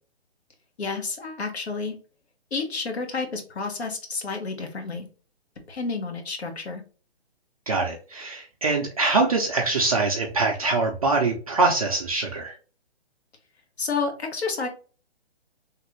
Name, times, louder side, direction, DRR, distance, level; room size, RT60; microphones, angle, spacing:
voice 1, 0.8-2.0 2.5-5.1 5.6-6.8 13.8-14.7, left 4 dB, 90° left, 4 dB, 1.2 m, -30 dB
voice 2, 7.7-12.6, right 3 dB, 35° right, 0 dB, 0.4 m, -23 dB
3.2 x 2.5 x 2.9 m, 0.36 s
hypercardioid pair, 165°, 31 cm